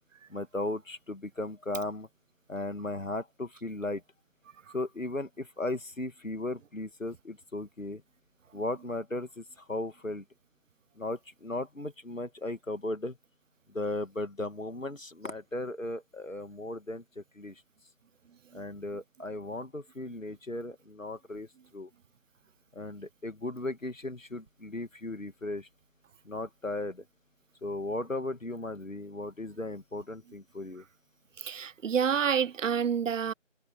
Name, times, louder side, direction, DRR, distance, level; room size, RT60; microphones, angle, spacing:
voice 1, 0.3-2.1 2.5-4.0 4.7-8.0 8.5-10.2 11.0-13.2 13.7-17.6 18.5-21.9 22.7-25.7 26.2-27.0 27.6-30.8, left 2 dB, 80° left, 2.5 m, -36 dB
voice 2, 31.4-33.3, right 7 dB, 75° right, 0.5 m, -28 dB
figure-of-eight pair, 165°, 38 cm